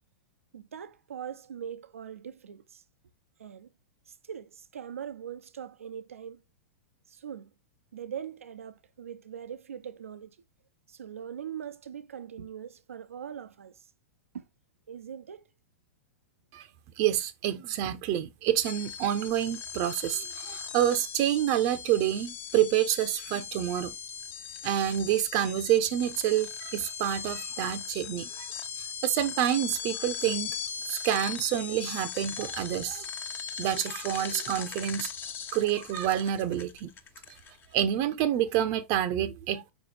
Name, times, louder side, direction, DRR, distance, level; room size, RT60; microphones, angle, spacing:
voice 1, 0.5-2.8 3.4-3.7 4.1-6.4 7.1-7.5 7.9-10.4 10.9-13.9 14.3-14.5 14.9-15.5, right 8 dB, 85° right, 0.6 m, -41 dB
voice 2, 17.0-23.9 24.6-28.5 28.8-30.5 30.9-33.1 33.6-35.1 35.5-36.9 37.7-39.7, right 11 dB, 45° right, 0.7 m, -28 dB
sound 1, 18.6-37.8, left 7 dB, 30° left, 1.0 m, -39 dB
5.8 x 5.2 x 3.4 m
hypercardioid pair, 110°, 7 cm